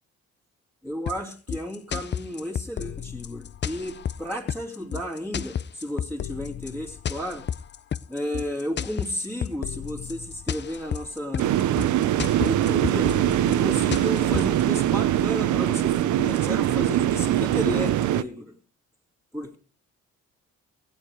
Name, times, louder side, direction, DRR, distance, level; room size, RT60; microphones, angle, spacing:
voice 1, 0.8-7.4 8.1-11.8 12.4-13.1 13.4-18.5 19.3-19.5, equal, 5° right, -5 dB, 2.7 m, -33 dB
sound 1, 1.1-14.6, left 8 dB, 35° left, 0.6 m, -32 dB
sound 2, 11.4-18.2, right 12 dB, 75° right, 0.8 m, -22 dB
16.0 x 9.1 x 4.8 m, 0.38 s
cardioid pair, 90°, 30 cm